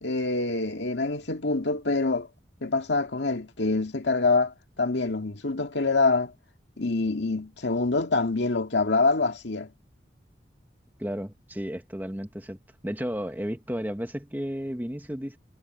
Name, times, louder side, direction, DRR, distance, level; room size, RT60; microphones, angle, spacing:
voice 1, 0.0-2.3 2.6-6.3 6.8-9.7, left 3 dB, 90° left, 2.0 m, -25 dB
voice 2, 11.0-15.4, equal, 10° right, 1.3 m, -33 dB
head